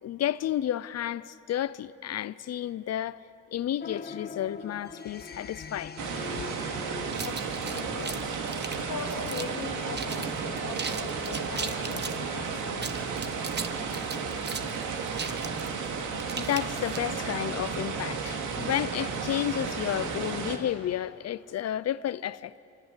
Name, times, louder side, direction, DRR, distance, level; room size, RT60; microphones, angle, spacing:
voice 1, 0.0-3.2 3.5-6.0 6.4-6.5 16.3-22.6, left 11 dB, 55° left, 0.6 m, -31 dB
sound 1, 3.8-8.3, left 5 dB, 30° left, 1.7 m, -42 dB
sound 2, 6.0-20.6, right 5 dB, 80° right, 2.6 m, -33 dB
sound 3, 7.1-9.6 10.0-10.3 10.6-12.2 12.7-17.3, right 5 dB, 35° right, 1.4 m, -37 dB
voice 2, 7.2-8.4 8.8-13.0, left 5 dB, 75° left, 2.7 m, -40 dB
28.0 x 24.5 x 8.3 m
cardioid pair, 90°, 30 cm